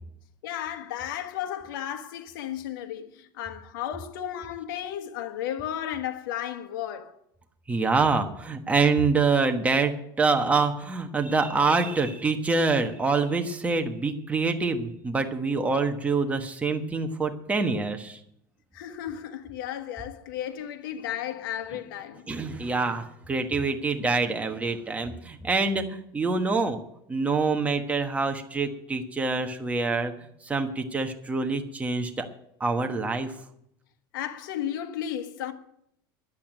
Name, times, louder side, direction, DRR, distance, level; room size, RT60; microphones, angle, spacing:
voice 1, 0.4-7.2 18.7-22.3 34.1-35.5, left 10 dB, 80° left, 1.3 m, -34 dB
voice 2, 7.7-18.2 22.3-26.8 27.1-30.1 30.4-32.3 32.6-33.3, right 4 dB, 10° right, 1.3 m, -26 dB
10.5 x 8.4 x 9.3 m
supercardioid pair, 120°, 11 cm